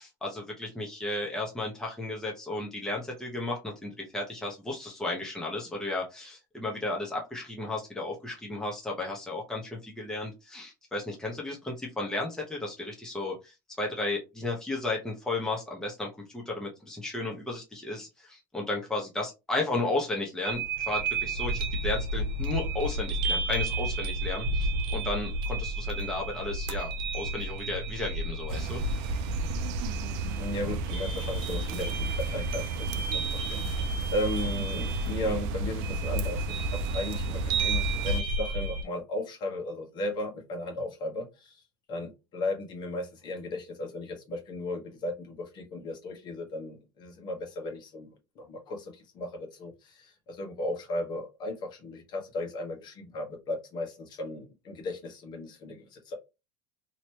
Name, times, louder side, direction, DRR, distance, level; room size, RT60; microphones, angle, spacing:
voice 1, 0.0-16.1 16.3-28.8, left 2 dB, 5° left, -2 dB, 1.0 m, -34 dB
sound 1, 20.4-38.8, right 2 dB, 50° right, 1.1 m, -32 dB
sound 2, 28.5-38.2, right 3 dB, 70° right, 0.5 m, -33 dB
voice 2, 30.3-41.6 41.9-56.2, left 1 dB, 40° left, 1 dB, 1.3 m, -36 dB
3.0 x 3.0 x 3.0 m, 0.25 s
supercardioid pair, 125°, 11 cm